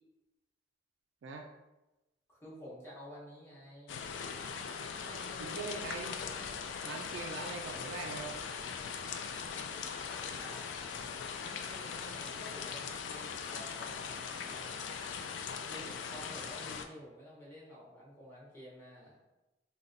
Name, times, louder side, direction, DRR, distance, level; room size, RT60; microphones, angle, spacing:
voice 1, 2.3-4.0 5.0-5.8 10.3-10.7 11.3-14.8 15.7-19.2, equal, 15° left, -7 dB, 0.9 m, -51 dB
sound 1, 3.9-16.9, left 6 dB, 90° left, 0.3 m, -40 dB
voice 2, 5.4-6.1 6.8-8.3, right 4 dB, 85° right, 2 dB, 0.3 m, -42 dB
4.0 x 2.1 x 2.6 m, 1.0 s
head